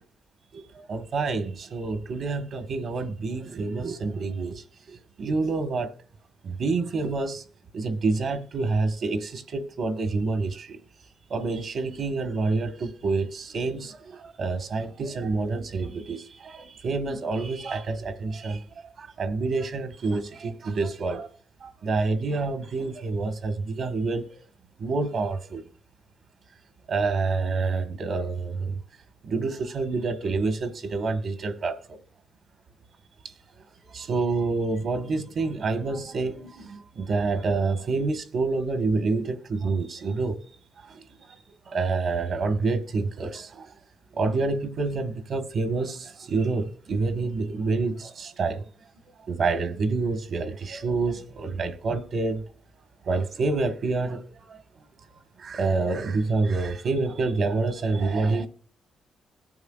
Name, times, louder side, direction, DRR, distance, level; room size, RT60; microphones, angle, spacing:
voice 1, 0.7-5.9 6.4-7.4 7.7-10.8 11.3-21.3 21.6-24.2 24.8-25.6 26.9-28.8 29.2-32.0 33.9-40.4 40.8-41.0 41.7-43.7 44.1-48.6 49.3-52.4 53.0-54.6 55.4-58.5, right 3 dB, 65° right, 1.5 m, -28 dB
18.0 x 9.5 x 2.4 m
cardioid pair, 100°, 0 cm